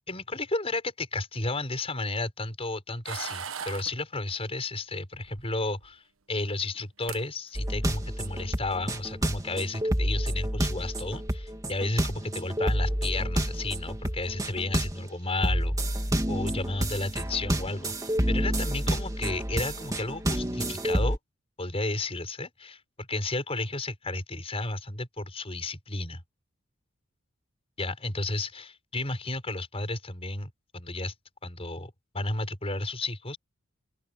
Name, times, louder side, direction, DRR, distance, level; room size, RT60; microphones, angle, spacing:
voice 1, 0.1-6.0 6.3-15.8 16.3-17.9 18.3-21.2 21.6-26.2 27.8-31.1 31.4-33.4, left 2 dB, 30° left, 5.4 m, -33 dB
sound 1, 3.1-3.9 5.2-5.9 6.8-6.9 7.0-7.2 7.6-8.0, right 6 dB, 80° right, 1.3 m, -38 dB
sound 2, 7.5-15.1 15.4-21.2, right 1 dB, 15° right, 2.2 m, -29 dB
open air
head